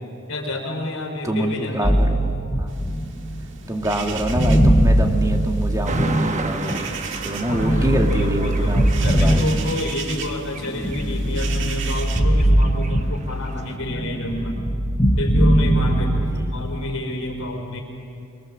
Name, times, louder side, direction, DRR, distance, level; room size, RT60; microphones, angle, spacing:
voice 1, 0.3-2.1 7.5-8.8 9.0-14.6 15.2-17.8, left 1 dB, 65° left, 2 dB, 4.4 m, -29 dB
voice 2, 1.2-2.7 3.7-6.9 7.2-9.5 16.2-16.6, right 1 dB, 15° right, 3 dB, 2.0 m, -26 dB
sound 1, 1.8-6.9 7.5-10.1 10.6-13.5 13.7-16.4, right 1 dB, 15° left, 1.7 m, -20 dB
sound 2, 2.7-12.2, right 6 dB, 55° right, 1.9 m, -37 dB
sound 3, 5.8-13.8, right 3 dB, 30° right, 1.1 m, -35 dB
25.5 x 24.0 x 7.5 m, 2.6 s
head